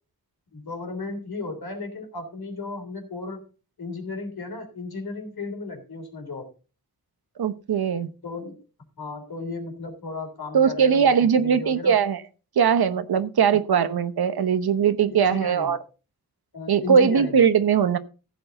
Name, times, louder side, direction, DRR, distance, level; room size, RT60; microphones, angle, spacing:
voice 1, 0.5-3.5 3.8-6.5 8.2-8.6 9.0-12.0 15.1-15.7 16.5-17.4, left 3 dB, 85° left, 3 dB, 3.5 m, -35 dB
voice 2, 7.4-8.1 10.5-12.2 12.6-15.8 16.7-18.0, right 7 dB, 90° right, 12 dB, 1.0 m, -20 dB
15.0 x 8.1 x 3.9 m, 0.34 s
wide cardioid pair, 100°, 36 cm